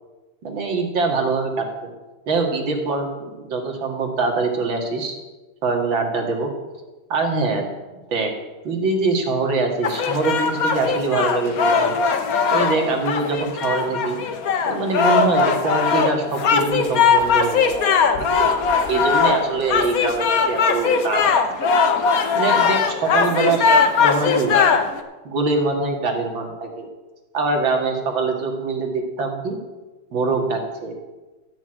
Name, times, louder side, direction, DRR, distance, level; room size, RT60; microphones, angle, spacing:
voice 1, 0.4-1.9 2.3-5.2 5.6-6.5 7.1-7.7 8.1-8.3 8.6-12.0 12.5-14.2 14.7-18.1 18.4-18.5 18.9-21.3 22.3-23.7 24.0-24.8 25.2-26.9 27.3-29.6 30.1-30.9, right 3 dB, 70° right, 2 dB, 2.6 m, -23 dB
sound 1, 9.8-25.0, left 5 dB, 55° left, 1.1 m, -20 dB
13.0 x 6.2 x 8.9 m, 1.2 s
omnidirectional pair, 2.3 m